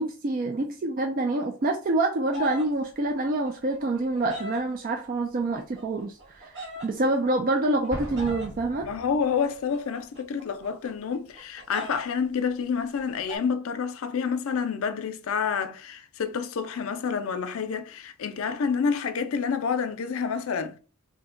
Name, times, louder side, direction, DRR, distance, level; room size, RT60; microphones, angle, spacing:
voice 1, 0.0-8.9, right 2 dB, 40° right, 0.3 m, -27 dB
sound 1, 2.3-2.7 3.4-4.6 5.5-6.9 7.8-8.5 9.5-12.1 12.3-12.4 12.6-13.4, left 2 dB, 55° right, 1.0 m, -40 dB
Explosion, 7.9-9.5, equal, 70° right, 1.3 m, -39 dB
voice 2, 8.8-20.8, left 6 dB, 70° left, 0.4 m, -28 dB
2.7 x 2.1 x 3.7 m
head